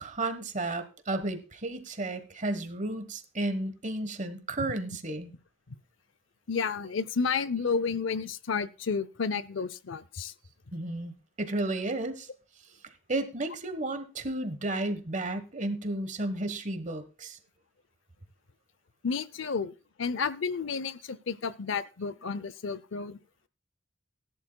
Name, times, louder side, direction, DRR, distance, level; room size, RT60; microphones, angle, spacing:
voice 1, 0.0-5.3 10.7-11.1 11.4-12.3 13.1-17.4, right 2 dB, 40° right, 10 dB, 1.3 m, -33 dB
voice 2, 6.5-10.3 19.0-19.7 20.0-23.2, left 5 dB, 70° left, 17 dB, 0.6 m, -31 dB
18.0 x 11.0 x 2.3 m, 0.32 s
head